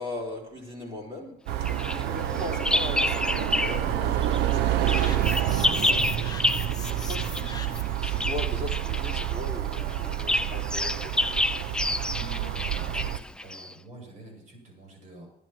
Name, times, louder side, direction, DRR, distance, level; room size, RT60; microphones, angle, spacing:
voice 1, 0.0-6.0 6.3-11.3, left 2 dB, 30° right, -2 dB, 3.3 m, -39 dB
sound 1, 1.5-13.2, right 12 dB, 85° right, 0.7 m, -28 dB
Bird vocalization bird call bird song, 1.6-3.9 4.2-13.7, left 1 dB, 5° left, 0.4 m, -29 dB
sound 2, 5.0-8.0, left 5 dB, 25° left, 0.8 m, -42 dB
voice 2, 12.1-13.1 13.4-15.3, right 1 dB, 50° right, 1 dB, 6.3 m, -46 dB
11.0 x 10.5 x 5.9 m, 0.80 s
cardioid pair, 110°, 17 cm